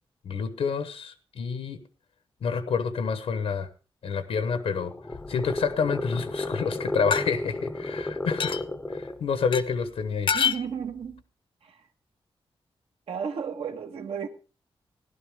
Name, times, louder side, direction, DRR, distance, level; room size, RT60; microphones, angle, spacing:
voice 1, 0.2-1.8 2.4-3.7 4.0-4.9 5.3-8.6 8.9-10.3, left 5 dB, 90° left, 1.0 m, -28 dB
sound 1, 4.5-9.3, left 2 dB, 15° left, 0.6 m, -33 dB
sound 2, 5.1-5.7 7.1-7.2 8.4-8.6 9.5-9.6 10.3-10.6, left 7 dB, 55° left, 0.6 m, -26 dB
voice 2, 10.3-11.2 11.6-11.9 13.1-14.3, right 7 dB, 75° right, 1.5 m, -33 dB
16.5 x 11.5 x 3.6 m
wide cardioid pair, 175°, 10 cm